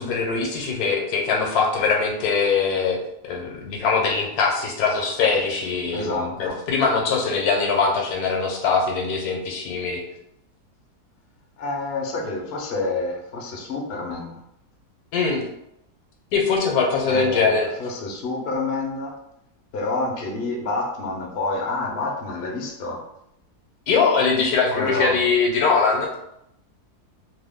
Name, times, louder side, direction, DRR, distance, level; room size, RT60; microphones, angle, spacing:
voice 1, 0.0-10.0 15.1-15.4 16.3-17.7 23.9-26.1, left 5 dB, 75° left, 0 dB, 1.2 m, -22 dB
voice 2, 5.9-6.6 11.6-14.4 17.0-19.1 19.7-23.0 24.7-25.2, left 2 dB, 55° left, 0 dB, 0.7 m, -28 dB
2.9 x 2.2 x 3.4 m, 0.80 s
omnidirectional pair, 1.7 m